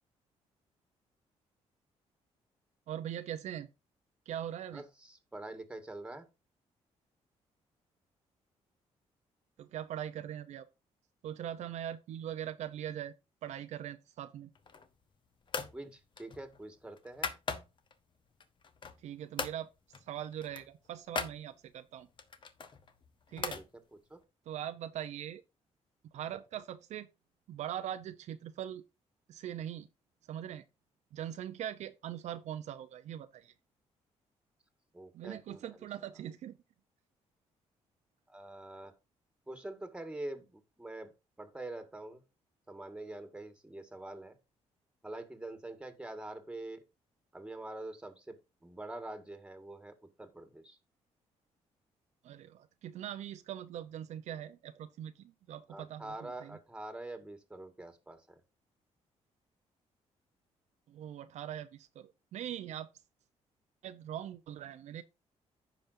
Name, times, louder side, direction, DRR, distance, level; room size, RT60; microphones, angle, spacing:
voice 1, 2.9-3.7 4.3-4.8 9.6-10.7 11.2-13.1 13.4-14.5 19.0-19.7 20.0-22.1 23.3-23.6 24.5-25.4 26.0-27.1 27.5-28.8 29.3-29.9 30.3-30.6 31.1-33.5 35.1-36.6 52.2-56.6 60.9-62.9 63.8-65.0, right 10 dB, 75° right, 0.7 m, -41 dB
voice 2, 4.7-6.3 15.7-17.3 23.6-23.7 23.9-24.2 34.9-35.8 38.3-38.9 39.5-41.1 41.4-42.2 42.7-44.4 45.0-46.8 47.3-48.4 48.6-50.8 55.7-58.4, right 2 dB, 10° right, 1.8 m, -45 dB
sound 1, 14.6-15.0 15.5-15.8 16.1-17.9 18.4-19.1 19.4-19.6 19.9-20.1 20.3-21.4 22.2-23.7, left 5 dB, 40° left, 1.1 m, -39 dB
15.0 x 5.2 x 2.6 m
cardioid pair, 105°, 12 cm